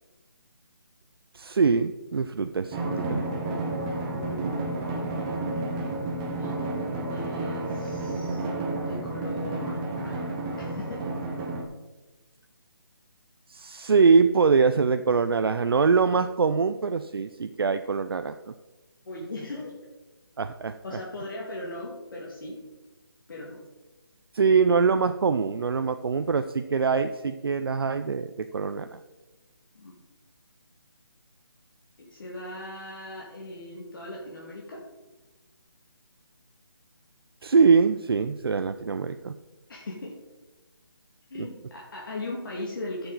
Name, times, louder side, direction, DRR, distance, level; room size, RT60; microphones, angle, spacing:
voice 1, 1.3-3.2 13.5-18.5 20.4-21.0 24.3-29.0 37.4-39.4 41.4-41.5, right 5 dB, 70° right, 9 dB, 0.5 m, -23 dB
Drum, 2.7-11.7, right 2 dB, 10° right, 0.8 m, -31 dB
voice 2, 4.1-4.6 6.2-6.6 7.1-8.5 8.9-11.1 19.1-19.8 20.8-22.6 23.3-23.6 29.7-29.9 32.0-34.8 39.7-40.2 41.3-43.1, left 2 dB, 55° left, -3 dB, 1.9 m, -38 dB
11.5 x 6.8 x 3.9 m, 1.1 s
hypercardioid pair, 165°, 13 cm